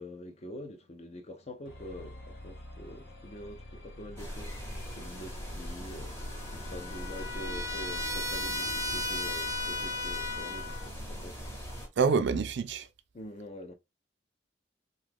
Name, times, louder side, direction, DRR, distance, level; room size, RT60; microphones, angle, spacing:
voice 1, 0.0-6.2 6.5-11.4 13.1-13.7, left 1 dB, 35° left, 0.5 m, -45 dB
sound 1, 1.7-9.1, left 1 dB, 60° left, 1.0 m, -47 dB
sound 2, 4.2-11.9, equal, 15° left, 0.9 m, -41 dB
Trumpet, 6.2-10.9, left 2 dB, 20° right, 0.6 m, -35 dB
voice 2, 12.0-12.9, right 5 dB, 65° right, 0.4 m, -26 dB
2.8 x 2.4 x 3.4 m
head